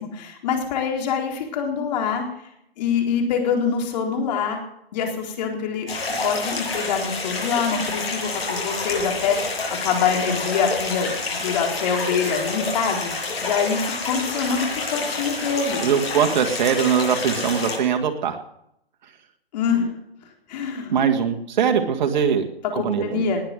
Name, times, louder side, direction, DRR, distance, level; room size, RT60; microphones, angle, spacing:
voice 1, 0.0-2.2 2.8-4.6 4.9-5.9 6.2-15.8 19.5-19.9 20.5-20.9 22.7-23.4, left 6 dB, 45° left, 2 dB, 4.1 m, -25 dB
sound 1, 5.9-17.8, left 3 dB, 70° left, 7.1 m, -28 dB
voice 2, 15.8-18.4 20.9-22.5 22.7-23.3, right 7 dB, 45° right, 5 dB, 1.9 m, -21 dB
20.0 x 8.0 x 7.8 m, 0.77 s
hypercardioid pair, 140°, 31 cm